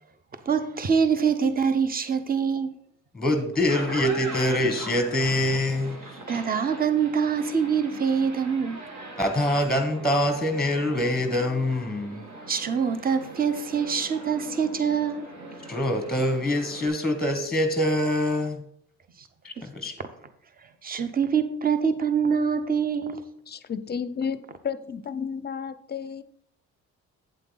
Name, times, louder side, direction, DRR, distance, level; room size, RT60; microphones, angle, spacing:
voice 1, 0.4-2.7 6.3-8.8 12.5-15.3 19.2-19.3 20.8-23.2, right 6 dB, 30° right, 10 dB, 0.8 m, -25 dB
voice 2, 3.1-6.2 9.2-12.2 15.7-18.6 19.4-20.0, left 1 dB, ahead, 6 dB, 1.3 m, -25 dB
sound 1, 3.5-16.9, right 2 dB, 70° right, 2.3 m, -41 dB
voice 3, 23.5-24.4 24.6-26.2, left 6 dB, 35° left, 13 dB, 0.6 m, -32 dB
8.5 x 7.8 x 4.0 m, 0.69 s
cardioid pair, 90°, 30 cm